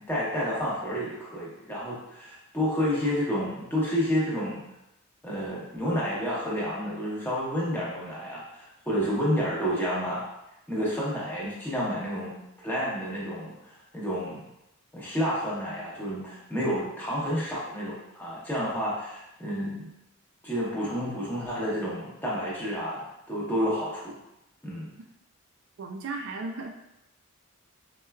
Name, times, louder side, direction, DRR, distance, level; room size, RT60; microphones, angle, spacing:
voice 1, 0.0-4.6 5.2-10.2 10.7-12.3 12.6-13.6 13.9-14.4 14.9-19.8 20.4-24.2 24.6-24.9, equal, 10° left, -7 dB, 0.8 m, -30 dB
voice 2, 25.8-26.7, right 3 dB, 60° right, 3 dB, 0.3 m, -35 dB
4.3 x 2.2 x 2.2 m, 0.87 s
head